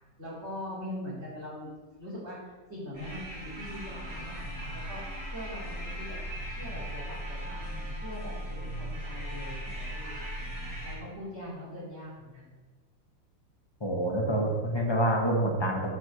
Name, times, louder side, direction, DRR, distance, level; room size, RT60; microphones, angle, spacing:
voice 1, 0.2-5.0 5.3-6.2 6.5-7.0 7.3-10.2 10.8-12.5, left 1 dB, 35° right, -7 dB, 3.5 m, -42 dB
sound 1, 2.9-11.0, equal, 15° right, 3.2 m, -38 dB
voice 2, 13.8-15.9, right 1 dB, 15° left, -1 dB, 1.4 m, -27 dB
9.1 x 5.0 x 6.5 m, 1.3 s
omnidirectional pair, 2.0 m